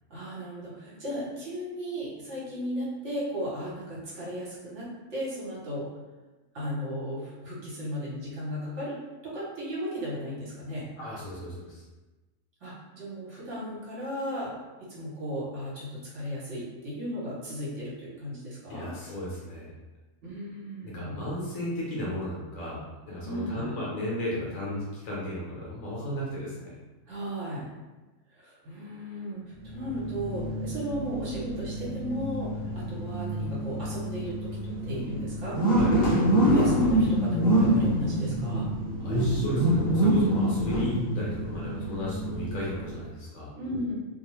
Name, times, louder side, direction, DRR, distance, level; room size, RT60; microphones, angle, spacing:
voice 1, 0.1-5.9 6.5-9.0 9.2-10.9 12.6-14.5 14.8-18.9 20.2-21.2 23.2-23.7 27.1-27.6 28.3-38.7 43.6-43.9, equal, 60° right, -7 dB, 1.2 m, -35 dB
voice 2, 11.0-11.8 18.7-19.7 20.8-26.8 35.8-36.2 39.0-43.5, left 1 dB, 80° left, -6 dB, 1.1 m, -35 dB
sound 1, 29.6-43.0, right 1 dB, 50° left, 1.1 m, -26 dB
2.7 x 2.2 x 3.0 m, 1.1 s
omnidirectional pair, 1.4 m